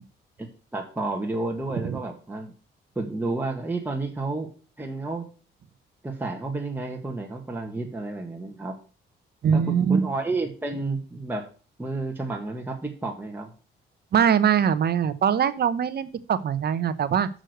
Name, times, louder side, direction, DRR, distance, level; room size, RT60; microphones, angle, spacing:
voice 1, 0.7-2.5 2.9-4.5 4.8-5.3 6.0-8.7 9.5-11.5 11.8-13.5, right 2 dB, 10° right, 0 dB, 1.6 m, -31 dB
voice 2, 9.4-10.1 14.1-17.3, right 8 dB, 55° right, 13 dB, 0.9 m, -22 dB
6.4 x 6.4 x 6.5 m, 0.37 s
cardioid pair, 90°, 20 cm